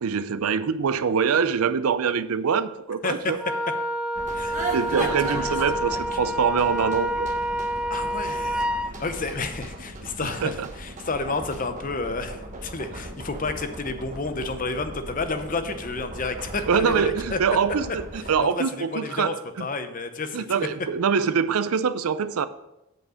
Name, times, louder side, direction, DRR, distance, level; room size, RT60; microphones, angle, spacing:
voice 1, 0.0-3.4 4.7-7.3 10.2-10.7 16.7-19.6 20.3-22.5, right 6 dB, 85° right, 13 dB, 0.5 m, -24 dB
voice 2, 3.0-3.3 4.3-4.6 5.0-5.5 7.9-8.7 9.0-17.4 18.4-20.5, left 3 dB, 40° left, 9 dB, 0.7 m, -31 dB
Wind instrument woodwind instrument, 3.4-8.9, equal, 5° right, 0.3 m, -28 dB
sound 1, 4.2-18.3, right 2 dB, 35° right, 1.1 m, -37 dB
7.8 x 5.0 x 6.3 m, 0.91 s
head